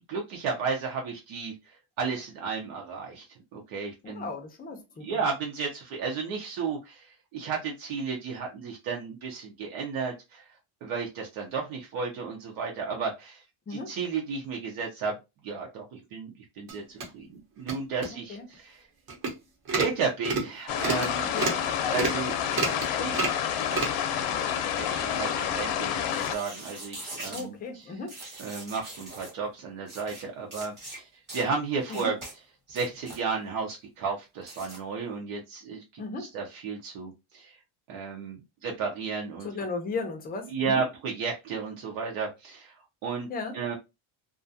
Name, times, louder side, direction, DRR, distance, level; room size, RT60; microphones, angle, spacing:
voice 1, 0.1-3.3 3.5-4.3 5.0-10.4 10.8-13.4 13.7-15.2 15.4-18.8 19.7-21.3 21.9-22.4 23.0-23.3 24.6-27.9 28.4-32.2 32.7-37.6 37.9-39.5 40.5-42.7 43.0-43.3 43.5-43.8, right 5 dB, 75° right, 0.8 m, -33 dB
voice 2, 4.0-5.2 13.7-13.9 18.1-18.5 21.3-21.7 27.3-28.2 31.9-32.1 36.0-36.3 39.4-40.8 43.3-43.5, left 3 dB, 20° left, 0.4 m, -36 dB
sound 1, 16.7-17.0 17.6-17.7 18.0-18.1 18.5-18.6 19.1-19.3 19.6-19.9 20.2-20.5 20.8-21.1 21.4-21.6 21.9-22.2 22.5-22.9 23.1-23.4 23.7-23.9, right 4 dB, 45° right, 0.9 m, -29 dB
sound 2, 20.7-26.4, left 9 dB, 75° left, 0.6 m, -29 dB
sound 3, 26.0-27.5 28.1-29.3 29.9-30.2 30.5-31.0 31.3-31.5 31.9-32.3 32.7-33.2 34.4-34.8, right 2 dB, 20° right, 1.1 m, -42 dB
2.5 x 2.3 x 2.6 m
cardioid pair, 160°, 50 cm